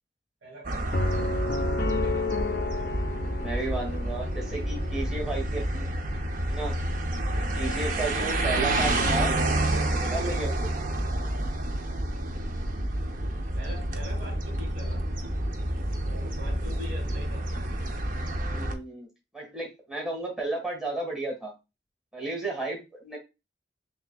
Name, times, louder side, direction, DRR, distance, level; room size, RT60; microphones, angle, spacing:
voice 1, 0.4-1.5 1.9-2.4 13.5-15.0 16.0-17.5, equal, 65° right, 1 dB, 2.0 m, -44 dB
sound 1, 0.6-18.7, right 1 dB, 45° right, 0.6 m, -29 dB
sound 2, 0.9-5.1, left 3 dB, 55° left, 0.5 m, -32 dB
voice 2, 3.4-5.9 6.5-6.7 7.5-9.3 10.0-10.7 18.5-19.1 19.3-21.5 22.1-23.2, right 2 dB, 5° right, -2 dB, 1.5 m, -33 dB
6.3 x 2.7 x 2.3 m, 0.25 s
head